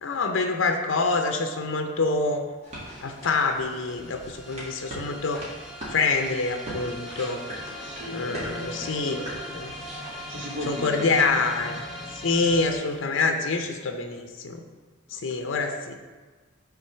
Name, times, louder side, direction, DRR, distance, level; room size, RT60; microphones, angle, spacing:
voice 1, 0.0-2.5 3.0-5.5 5.9-7.4 8.1-9.2 9.5-9.7 10.7-11.8 12.2-14.6 15.1-15.9, left 3 dB, 75° left, 5 dB, 0.6 m, -26 dB
sound 1, 2.5-2.6 2.8-12.8, left 1 dB, ahead, 1.3 m, -41 dB
sound 2, 2.6-11.0, right 1 dB, 35° right, 1.8 m, -41 dB
voice 2, 7.1-8.5 9.0-9.4 9.6-9.9 10.3-11.8 15.1-15.5, equal, 65° right, 1 dB, 1.0 m, -39 dB
sound 3, 8.0-13.7, equal, 25° left, 0.8 m, -44 dB
5.9 x 3.9 x 5.6 m, 1.4 s
head